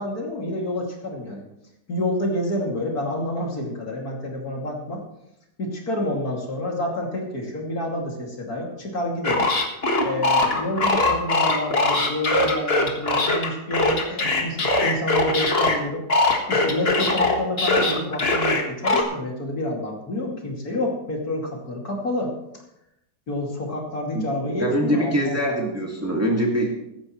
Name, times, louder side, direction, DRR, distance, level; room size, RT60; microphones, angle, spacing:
voice 1, 0.0-1.5 1.9-5.0 5.6-9.5 10.0-16.0 16.5-22.3 23.3-25.6, left 1 dB, 60° left, -1 dB, 3.1 m, -28 dB
sound 1, 9.2-15.8 16.1-19.0, left 2 dB, 35° left, 1.8 m, -21 dB
voice 2, 24.6-26.7, equal, 10° right, -1 dB, 2.0 m, -23 dB
15.5 x 13.0 x 3.2 m, 0.82 s
omnidirectional pair, 1.8 m